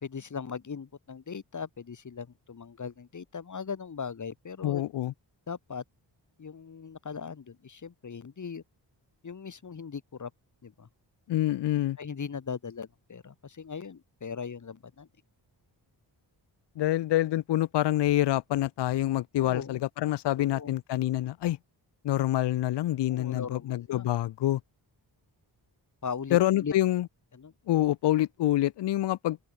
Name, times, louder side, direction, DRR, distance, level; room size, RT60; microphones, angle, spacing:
voice 1, 0.0-4.8 5.5-5.8 6.4-8.6 9.2-10.3 10.6-10.9 12.0-15.1 19.4-19.8 20.4-20.7 23.1-24.1 26.0-26.7 27.3-27.5, left 6 dB, 40° left, 1.4 m, -39 dB
voice 2, 4.6-5.1 11.3-12.0 16.8-21.6 22.0-24.6 26.3-27.1 27.7-29.4, left 14 dB, 65° left, 0.5 m, -26 dB
open air
wide cardioid pair, 95°, 44 cm